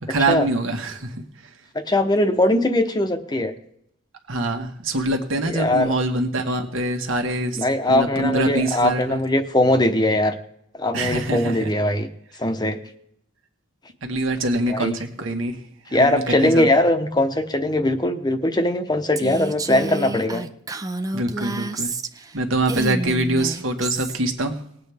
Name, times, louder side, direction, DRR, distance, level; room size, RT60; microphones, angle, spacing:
voice 1, 0.1-1.1 4.3-9.2 10.9-11.7 14.0-15.6 16.0-16.7 21.1-21.9 22.3-24.5, right 2 dB, 80° right, 4 dB, 1.6 m, -24 dB
voice 2, 1.7-3.5 5.4-5.9 7.6-10.3 10.7-12.1 12.4-12.8 14.7-15.0 15.9-20.4, left 1 dB, 20° left, 7 dB, 0.9 m, -20 dB
Female speech woman speaking, 19.2-22.3 22.6-24.2, right 2 dB, 20° right, 0.5 m, -29 dB
20.0 x 8.5 x 3.5 m, 0.71 s
head